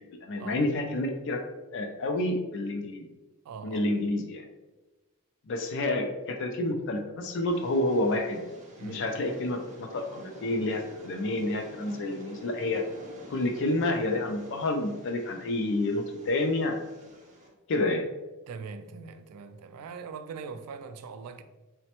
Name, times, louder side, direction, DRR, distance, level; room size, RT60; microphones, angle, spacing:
voice 1, 0.2-1.4 1.7-3.1 3.6-4.4 5.5-8.4 8.8-12.8 13.3-16.8 17.7-18.1, left 2 dB, 55° left, 0.4 m, -29 dB
voice 2, 3.4-3.9 8.8-9.1 18.5-21.4, right 5 dB, 85° right, 0.3 m, -41 dB
Train, 7.5-17.5, equal, 35° right, 0.7 m, -49 dB
4.0 x 2.1 x 2.8 m
head